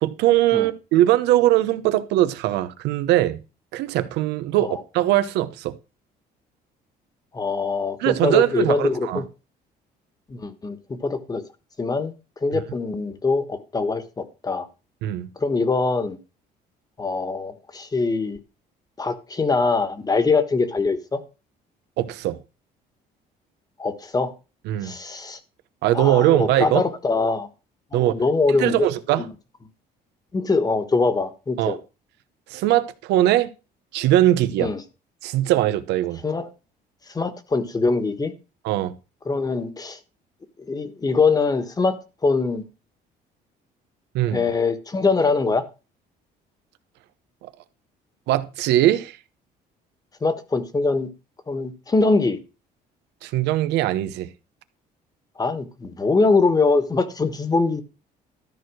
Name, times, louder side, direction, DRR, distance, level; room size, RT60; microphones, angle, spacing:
voice 1, 0.0-3.4 3.7-5.7 8.0-9.2 12.5-12.6 15.0-15.3 22.0-22.4 24.7-24.9 25.8-26.8 27.9-28.2 28.6-29.2 31.6-31.8 32.5-33.5 33.9-34.7 35.2-36.2 38.6-38.9 44.1-44.4 47.4-47.5 48.3-49.2 53.2-54.3, right 14 dB, 90° right, 1.0 m, -21 dB
voice 2, 7.3-9.2 10.3-11.4 11.8-12.1 12.4-14.7 15.4-16.2 17.0-18.4 19.0-21.2 23.8-24.3 24.8-25.4 25.9-27.5 27.9-28.9 29.2-29.3 30.3-31.8 34.6-34.8 36.2-36.5 37.1-38.3 39.2-40.0 40.7-42.0 42.2-42.6 44.3-45.6 50.2-51.1 51.5-52.4 55.4-57.8, left 3 dB, 20° left, 1.4 m, -23 dB
13.0 x 4.7 x 6.2 m
cardioid pair, 110°, 17 cm